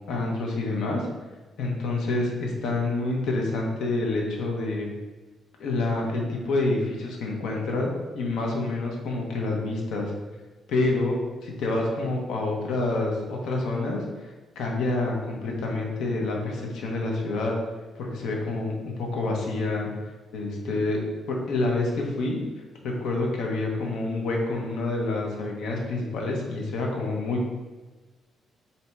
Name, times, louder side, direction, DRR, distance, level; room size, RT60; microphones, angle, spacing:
voice 1, 0.1-1.1 1.6-4.9 5.6-10.1 10.7-14.3 14.6-17.5 17.9-19.9 20.3-22.4 22.8-27.5, left 2 dB, 85° left, 0 dB, 0.7 m, -27 dB
3.3 x 2.8 x 4.2 m, 1.2 s
cardioid pair, 150°, 0 cm